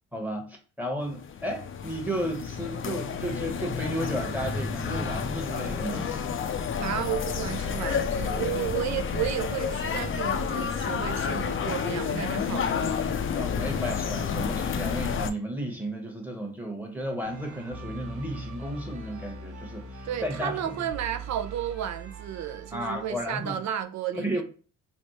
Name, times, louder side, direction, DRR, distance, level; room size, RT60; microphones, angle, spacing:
voice 1, 0.1-6.1 13.3-20.7 22.7-23.6 24.1-24.4, right 1 dB, 5° right, 1.0 m, -33 dB
sound 1, 1.1-15.3, left 6 dB, 45° left, 0.5 m, -30 dB
voice 2, 6.8-13.1 20.0-24.4, right 10 dB, 65° right, 0.5 m, -32 dB
sound 2, 17.2-23.7, right 2 dB, 90° right, 1.1 m, -41 dB
3.4 x 2.1 x 4.2 m
cardioid pair, 90°, 30 cm